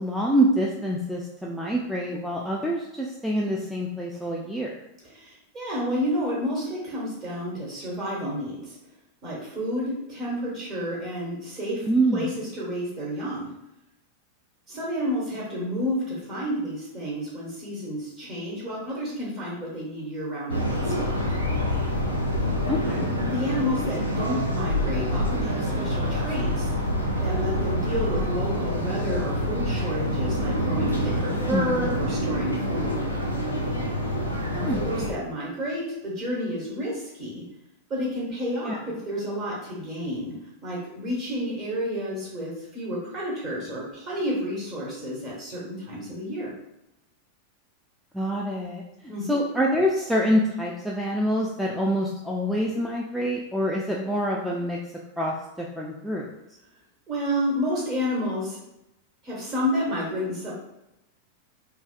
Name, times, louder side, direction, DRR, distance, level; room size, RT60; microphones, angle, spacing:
voice 1, 0.0-4.7 11.9-12.3 22.7-23.2 31.5-31.9 34.6-34.8 38.6-38.8 48.1-54.8 55.2-56.3, equal, ahead, -3 dB, 0.3 m, -26 dB
voice 2, 5.1-8.8 9.2-11.9 12.1-13.5 14.7-21.2 23.2-26.7 27.2-33.0 34.5-37.4 37.9-40.4 40.6-46.5 49.1-49.4 57.1-58.6 59.2-60.5, equal, 35° right, -6 dB, 1.3 m, -30 dB
sound 1, 20.5-35.1, equal, 85° right, 0.4 m, -26 dB
3.2 x 2.2 x 2.4 m, 0.89 s
figure-of-eight pair, 90°, 0 cm